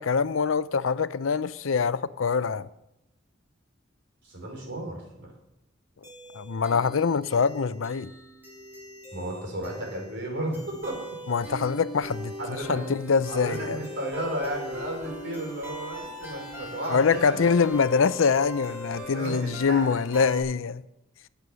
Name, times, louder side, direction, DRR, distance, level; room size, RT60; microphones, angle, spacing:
voice 1, 0.0-2.7 6.3-8.1 11.3-12.3 12.7-13.8 16.9-20.8, left 5 dB, 80° left, 0.5 m, -24 dB
voice 2, 4.2-5.3 9.1-11.0 12.4-12.9 13.3-17.4 19.0-20.0, right 1 dB, 60° right, 4.9 m, -34 dB
sound 1, 6.0-20.4, equal, 10° right, 4.8 m, -40 dB
18.0 x 8.3 x 6.3 m
head